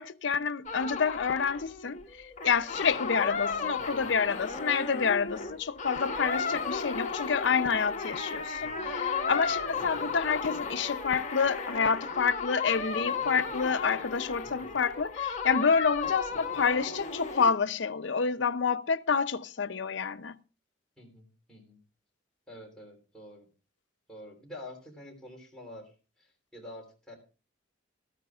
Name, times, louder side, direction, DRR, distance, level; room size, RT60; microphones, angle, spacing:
voice 1, 0.0-20.3, left 6 dB, 70° left, 0.6 m, -28 dB
sound 1, 0.7-17.5, left 5 dB, 35° left, 1.4 m, -34 dB
voice 2, 3.7-4.1 8.6-8.9 9.7-10.1 14.4-14.8 16.3-16.6 21.0-21.8 22.5-23.5 24.1-27.1, left 1 dB, 5° left, 3.5 m, -48 dB
17.0 x 14.0 x 2.4 m
head